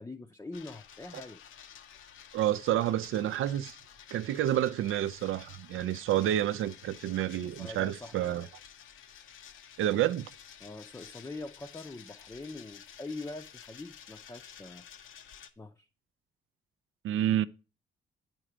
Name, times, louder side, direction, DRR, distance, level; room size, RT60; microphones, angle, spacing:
voice 1, 0.0-1.4 7.6-8.4 10.6-14.8 15.6-15.9, left 2 dB, 10° left, 0.5 m, -43 dB
sound 1, 0.5-15.5, left 8 dB, 70° left, 0.7 m, -52 dB
voice 2, 2.3-3.8 4.1-8.5 9.8-10.3 17.0-17.5, right 12 dB, 75° right, 0.5 m, -29 dB
8.9 x 4.5 x 4.9 m
cardioid pair, 75°, 21 cm